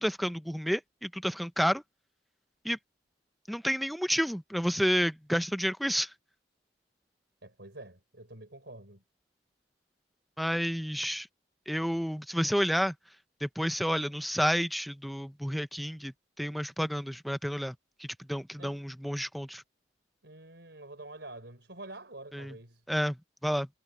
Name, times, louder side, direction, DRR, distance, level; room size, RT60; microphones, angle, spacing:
voice 1, 0.0-1.8 2.6-2.8 3.5-6.1 10.4-11.3 11.7-12.9 13.4-17.7 18.0-19.6 22.3-22.5 22.9-23.2 23.4-23.7, equal, ahead, 0.7 m, -30 dB
voice 2, 7.4-9.0 18.6-18.8 20.2-22.8, right 2 dB, 70° right, 4.9 m, -47 dB
head